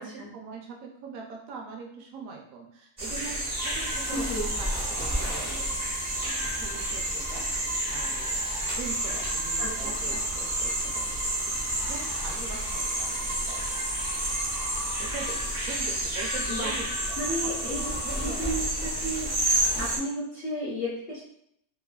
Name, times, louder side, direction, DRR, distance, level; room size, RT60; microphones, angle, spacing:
voice 1, 0.0-4.3 4.6-5.8 6.1-8.2 8.7-11.0 11.5-11.6 11.8-13.9 15.0-18.9 19.7-19.9, right 5 dB, 70° right, 1 dB, 0.9 m, -42 dB
sound 1, 3.0-20.0, right 1 dB, 40° right, 0.3 m, -30 dB
sound 2, 3.6-15.4, right 1 dB, 85° right, 1.3 m, -42 dB
voice 2, 4.1-4.5 9.6-10.2 16.5-16.7 17.2-17.9 18.2-19.3 19.8-21.2, equal, 60° left, -6 dB, 0.6 m, -33 dB
sound 3, 9.2-19.0, left 3 dB, 90° left, 1.1 m, -45 dB
3.1 x 2.0 x 2.2 m, 0.73 s
omnidirectional pair, 1.6 m